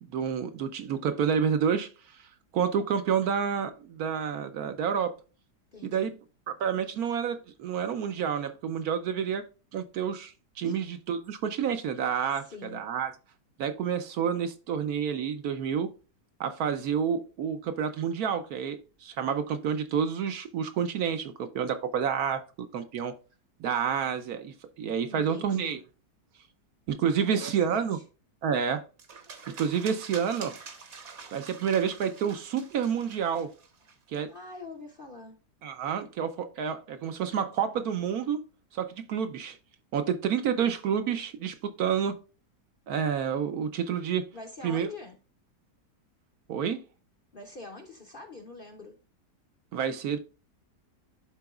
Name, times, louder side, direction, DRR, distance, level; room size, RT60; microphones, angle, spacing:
voice 1, 0.1-1.9 2.1-2.2 2.5-5.1 5.8-6.1 6.5-9.4 9.7-13.1 13.6-15.9 16.4-23.1 23.6-25.8 26.9-28.0 28.4-28.8 29.6-30.6 31.3-33.5 34.1-34.3 35.6-38.4 38.7-39.6 39.9-42.2 42.9-44.2 44.6-44.9 46.5-46.8 49.7-50.2, right 7 dB, 65° right, 1.1 m, -29 dB
voice 2, 5.7-6.1 10.6-10.8 12.5-12.8 25.1-25.8 27.2-28.0 34.3-35.4 44.3-45.1 47.3-49.0, left 3 dB, 45° left, 0.8 m, -44 dB
sound 1, 29.0-34.2, right 5 dB, 45° right, 1.1 m, -46 dB
11.5 x 3.9 x 2.3 m
omnidirectional pair, 1.8 m